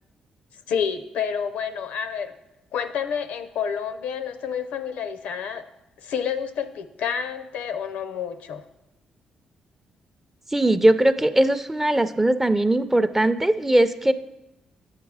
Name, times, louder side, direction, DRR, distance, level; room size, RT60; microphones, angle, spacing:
voice 1, 0.7-2.3 2.7-5.7 6.0-8.6, left 7 dB, 85° left, 10 dB, 0.5 m, -29 dB
voice 2, 10.5-14.1, right 1 dB, 10° right, 11 dB, 0.4 m, -20 dB
8.2 x 5.4 x 4.8 m, 0.90 s
cardioid pair, 80°, 2 cm